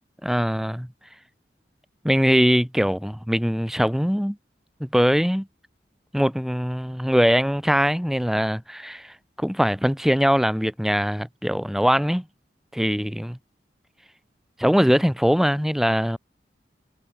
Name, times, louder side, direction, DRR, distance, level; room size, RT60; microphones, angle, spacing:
voice 1, 0.2-0.9 2.0-4.4 4.8-5.5 6.1-12.2 12.7-13.4 14.6-16.2, equal, ahead, 1.6 m, -22 dB
head